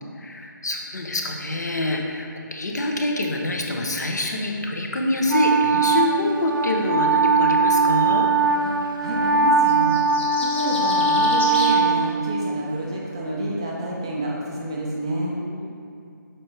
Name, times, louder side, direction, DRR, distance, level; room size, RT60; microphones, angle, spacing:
voice 1, 0.2-8.3 15.4-15.7, left 1 dB, 55° left, 1 dB, 0.8 m, -26 dB
Wind instrument woodwind instrument, 5.3-12.8, right 3 dB, 85° right, 0.4 m, -20 dB
voice 2, 8.6-10.0 10.4-15.3, right 1 dB, 15° right, -3 dB, 0.4 m, -29 dB
sound 1, 9.7-11.8, left 2 dB, 30° left, 1.0 m, -32 dB
6.5 x 4.4 x 3.2 m, 2.5 s
figure-of-eight pair, 150°, 11 cm